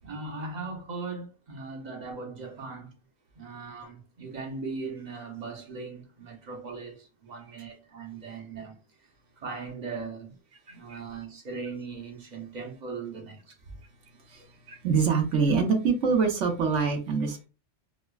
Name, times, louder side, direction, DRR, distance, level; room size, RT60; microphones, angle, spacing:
voice 1, 0.0-2.9 3.3-8.8 9.4-10.4 10.7-13.5, right 4 dB, 40° right, 0.8 m, -39 dB
voice 2, 10.7-11.0 14.3-17.5, right 5 dB, 80° right, 1.2 m, -25 dB
5.0 x 2.1 x 2.3 m
omnidirectional pair, 1.2 m